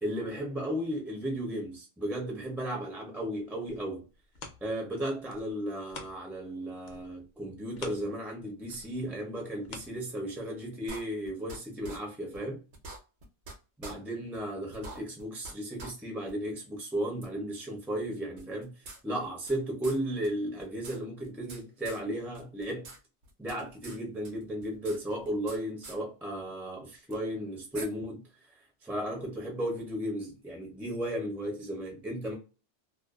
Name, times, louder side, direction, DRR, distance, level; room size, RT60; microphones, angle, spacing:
voice 1, 0.0-4.0 4.6-12.6 13.8-22.9 23.4-28.2 28.6-32.3, right 1 dB, ahead, 0.4 m, -35 dB
sound 1, 3.6-6.5 6.8-10.6 11.1-11.2, left 3 dB, 55° left, 0.5 m, -49 dB
sound 2, 10.9-11.6 11.8-12.0 12.3-12.4 12.7-13.5 13.8-13.9 14.3-14.4 14.7-15.5 15.8-15.9 16.3-16.4 17.2-17.3 18.4-19.6 19.8-20.0 20.2-20.3 20.6-21.6 21.8-22.0 22.3-23.0 23.2-24.0 24.2-25.6 25.8-26.0 27.1-27.2 27.7-27.8, right 2 dB, 65° right, 1.0 m, -44 dB
2.5 x 2.2 x 2.3 m
omnidirectional pair, 1.2 m